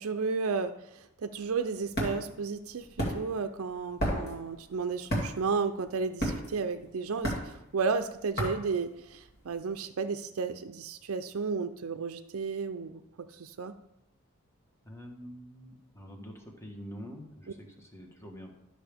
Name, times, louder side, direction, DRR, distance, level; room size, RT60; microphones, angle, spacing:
voice 1, 0.0-13.0 13.3-13.7, right 5 dB, 70° right, 8 dB, 0.5 m, -33 dB
sound 1, 1.3-9.5, equal, 45° left, 2.3 m, -34 dB
voice 2, 14.8-18.5, equal, 15° left, 1 dB, 1.3 m, -46 dB
12.0 x 6.3 x 3.4 m, 0.85 s
head